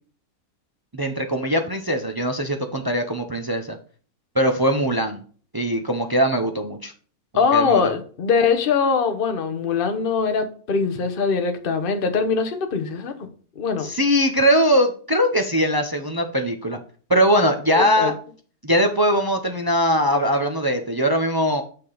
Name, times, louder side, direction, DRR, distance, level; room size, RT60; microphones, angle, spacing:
voice 1, 0.9-3.8 4.3-5.2 5.5-6.9 7.3-7.9 13.8-16.8 17.1-18.1 18.6-21.6, equal, 40° right, 5 dB, 0.3 m, -21 dB
voice 2, 7.3-13.1 13.6-13.9 17.8-18.1, left 5 dB, 40° left, 7 dB, 1.1 m, -22 dB
6.6 x 5.9 x 4.0 m, 0.42 s
omnidirectional pair, 1.7 m